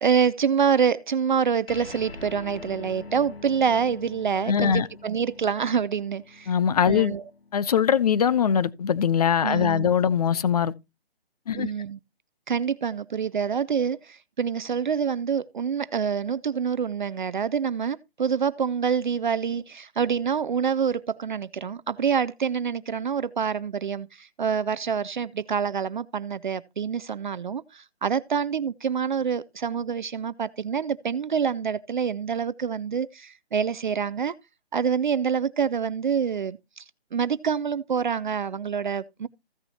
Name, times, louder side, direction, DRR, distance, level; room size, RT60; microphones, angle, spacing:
voice 1, 0.0-6.5 6.9-7.2 9.4-9.9 11.5-12.0 12.5-34.3 34.7-36.8 37.1-39.3, right 7 dB, 50° right, 0.5 m, -26 dB
sound 1, 1.7-8.4, left 4 dB, 65° left, 1.4 m, -44 dB
voice 2, 4.5-4.9 6.5-7.1 7.5-10.7 11.5-11.7, left 8 dB, 40° left, 0.6 m, -22 dB
15.5 x 6.7 x 2.9 m
figure-of-eight pair, 150°, 32 cm